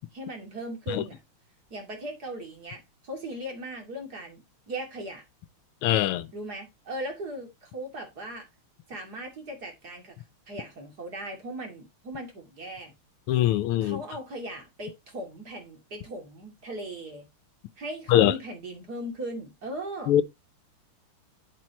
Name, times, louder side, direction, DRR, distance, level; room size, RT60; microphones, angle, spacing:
voice 1, 0.1-1.2 1.7-5.2 6.3-8.5 8.9-10.2 10.5-12.9 13.8-17.2 17.8-20.1, right 1 dB, 45° right, 3.1 m, -38 dB
voice 2, 5.8-6.3 13.3-14.0 18.1-18.3 20.1-20.2, left 12 dB, 85° left, 1.6 m, -22 dB
9.1 x 7.6 x 3.0 m
omnidirectional pair, 2.4 m